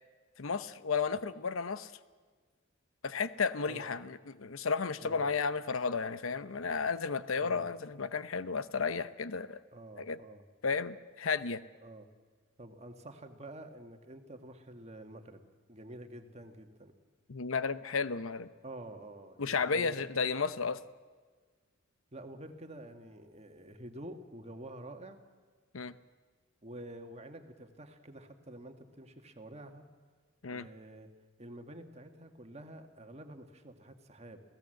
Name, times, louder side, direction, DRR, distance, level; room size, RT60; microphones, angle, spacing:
voice 1, 0.4-1.9 3.0-9.6 10.0-10.2 10.6-11.6 17.3-18.5 19.4-20.8 25.7-25.9 30.4-30.7, left 5 dB, 80° left, 13 dB, 0.8 m, -33 dB
voice 2, 7.4-7.7 9.7-10.4 11.8-12.1 12.6-15.4 15.7-16.9 18.6-20.0 22.1-25.2 26.6-29.9 30.5-31.1 31.4-34.4, right 1 dB, 30° right, 6 dB, 1.8 m, -48 dB
29.0 x 16.5 x 7.8 m, 1.5 s
head